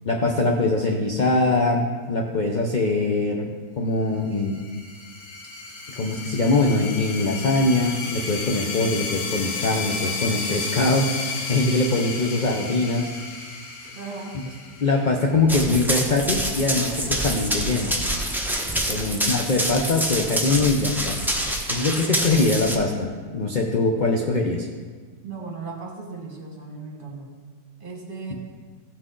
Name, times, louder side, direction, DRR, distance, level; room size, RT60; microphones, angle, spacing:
voice 1, 0.0-3.5 3.8-4.6 5.9-13.1 14.8-17.9 18.9-24.7, left 2 dB, 45° left, 1 dB, 0.6 m, -23 dB
sound 1, 4.4-15.6, left 4 dB, 70° left, 1.5 m, -33 dB
voice 2, 14.0-14.4 18.8-19.5 25.2-27.3 27.8-28.3, right 4 dB, 35° right, -1 dB, 1.7 m, -37 dB
Run, 15.5-22.8, right 1 dB, ahead, 0.5 m, -26 dB
15.5 x 6.1 x 3.8 m, 1.5 s
omnidirectional pair, 1.8 m